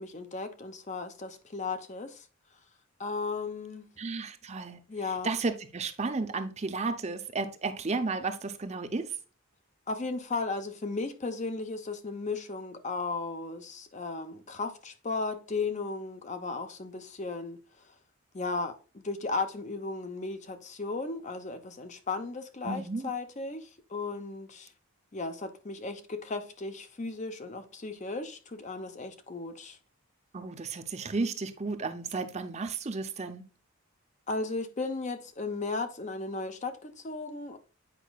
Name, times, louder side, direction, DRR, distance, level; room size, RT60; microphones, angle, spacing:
voice 1, 0.0-2.3 3.0-3.9 4.7-5.3 9.9-17.9 18.3-24.7 25.1-29.8 34.3-37.6, left 3 dB, 35° left, 0.7 m, -35 dB
voice 2, 4.0-9.1 22.6-23.1 30.3-33.4, right 3 dB, 30° right, 0.6 m, -33 dB
8.2 x 5.0 x 2.3 m
head